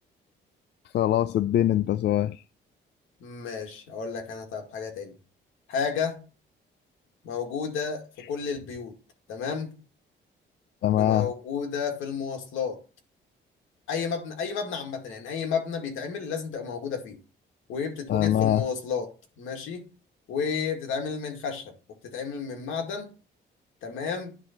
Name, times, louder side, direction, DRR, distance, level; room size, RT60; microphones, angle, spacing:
voice 1, 0.9-2.4 10.8-11.3 18.1-18.6, left 12 dB, 60° left, 0.4 m, -23 dB
voice 2, 3.2-5.1 5.7-6.2 7.2-8.9 9.3-9.7 11.0-12.8 13.9-17.2 17.7-19.1 19.4-19.8 20.3-21.7 22.0-23.1 23.8-24.3, left 6 dB, 85° left, 2.1 m, -32 dB
9.7 x 3.9 x 5.9 m
cardioid pair, 90°, 20 cm